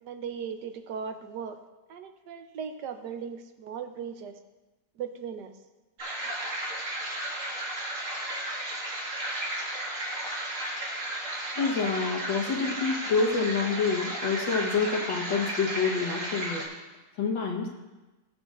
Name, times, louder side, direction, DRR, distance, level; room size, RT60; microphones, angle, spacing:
voice 1, 0.0-1.6 1.9-4.4 5.0-5.5, right 7 dB, 70° right, 7 dB, 1.2 m, -38 dB
sound 1, 6.0-16.7, right 1 dB, 45° right, 2.1 m, -34 dB
voice 2, 11.6-16.6 17.2-17.7, left 5 dB, 80° left, 1 dB, 2.0 m, -27 dB
17.5 x 7.6 x 2.5 m, 1.1 s
omnidirectional pair, 2.0 m